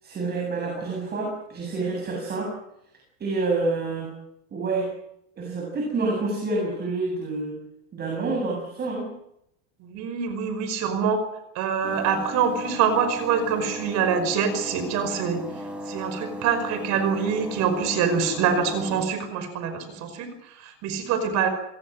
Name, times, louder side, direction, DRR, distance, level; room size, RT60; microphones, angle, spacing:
voice 1, 0.0-2.5 3.2-4.1 4.5-4.9 5.4-7.6 7.9-9.1, right 3 dB, 25° right, 0 dB, 7.8 m, -28 dB
voice 2, 9.8-11.3 11.6-15.4 15.9-21.5, right 6 dB, 45° right, 9 dB, 5.4 m, -25 dB
sound 1, 11.8-19.1, equal, 5° right, 6.3 m, -37 dB
28.0 x 22.5 x 6.4 m, 0.80 s
supercardioid pair, 130°, 37 cm